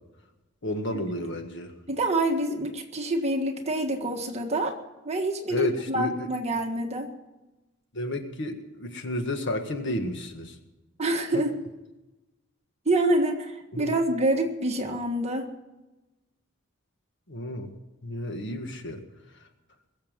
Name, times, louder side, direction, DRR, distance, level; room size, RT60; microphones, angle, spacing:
voice 1, 0.6-1.7 5.5-6.3 7.9-10.5 11.3-11.4 13.7-13.9 17.3-17.7 18.0-19.0, left 1 dB, 60° left, 6 dB, 1.7 m, -31 dB
voice 2, 1.9-4.8 5.0-7.1 11.0-11.6 12.8-15.5, right 1 dB, 30° right, 3 dB, 1.6 m, -27 dB
21.5 x 7.4 x 7.4 m, 1.1 s
head